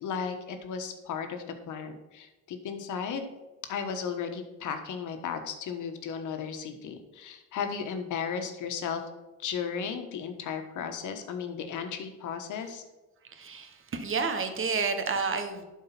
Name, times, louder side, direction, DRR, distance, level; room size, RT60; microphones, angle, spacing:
voice 1, 0.0-3.3 3.7-9.0 9.4-12.8, left 6 dB, 80° left, 6 dB, 1.4 m, -35 dB
voice 2, 13.3-15.6, right 4 dB, 45° right, 7 dB, 1.5 m, -30 dB
11.5 x 4.7 x 5.9 m, 1.1 s
cardioid pair, 90°, 30 cm